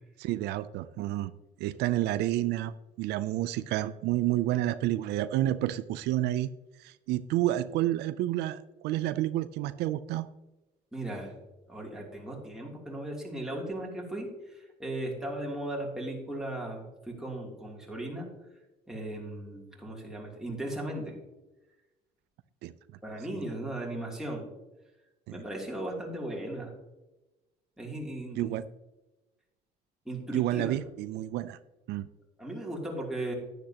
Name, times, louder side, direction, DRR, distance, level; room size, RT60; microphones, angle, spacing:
voice 1, 0.2-1.3 1.6-6.5 6.8-10.3 22.6-22.7 25.3-25.4 28.4-28.6 30.3-31.6 31.9-32.1, right 14 dB, 85° right, 13 dB, 0.4 m, -30 dB
voice 2, 10.9-11.4 11.7-18.3 18.9-21.2 23.0-24.4 25.3-26.7 27.8-28.5 30.0-30.8 32.4-33.3, right 1 dB, 5° right, -3 dB, 2.9 m, -37 dB
10.5 x 10.0 x 2.9 m, 1.0 s
cardioid pair, 110°, 17 cm